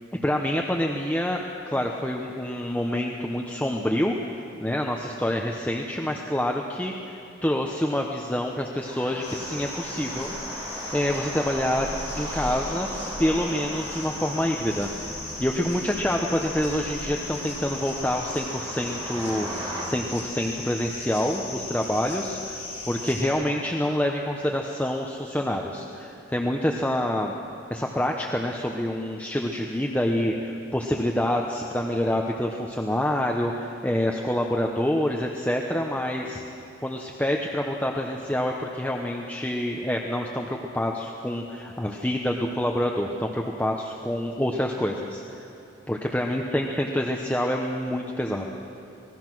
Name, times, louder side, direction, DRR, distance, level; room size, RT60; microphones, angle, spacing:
voice 1, 0.2-4.1 4.6-10.7 10.9-11.9 12.2-12.9 13.2-22.6 22.9-27.3 27.7-36.4 36.8-45.5 45.9-48.5, left 1 dB, 5° left, 0 dB, 0.9 m, -27 dB
sound 1, 8.8-19.8, right 1 dB, 20° right, 3.6 m, -38 dB
sound 2, 9.2-23.3, left 2 dB, 30° left, 6.2 m, -37 dB
25.5 x 20.5 x 6.3 m, 2.9 s
head